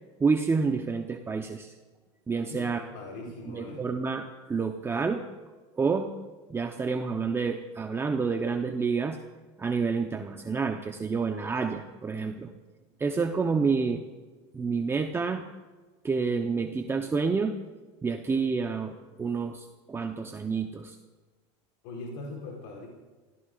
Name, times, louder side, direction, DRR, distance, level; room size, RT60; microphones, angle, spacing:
voice 1, 0.2-1.7 2.3-2.8 3.5-5.2 5.7-6.1 6.5-9.2 9.6-12.5 13.0-14.0 14.5-15.5 16.0-17.6 18.0-21.0, right 5 dB, 15° right, 5 dB, 0.9 m, -29 dB
voice 2, 2.4-3.8 21.8-22.9, left 2 dB, 70° left, -1 dB, 4.0 m, -41 dB
28.0 x 17.0 x 2.5 m, 1.3 s
supercardioid pair, 115°, 15 cm